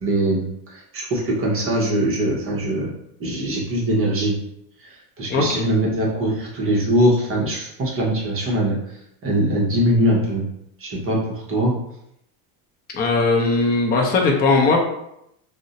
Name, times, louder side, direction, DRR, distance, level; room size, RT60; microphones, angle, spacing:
voice 1, 0.0-2.9 3.2-4.4 4.8-10.4 10.8-11.7, right 1 dB, 30° right, -3 dB, 0.7 m, -22 dB
voice 2, 5.3-5.7 12.9-14.8, left 3 dB, 20° left, 1 dB, 0.4 m, -18 dB
2.5 x 2.1 x 3.9 m, 0.78 s
supercardioid pair, 125°, 48 cm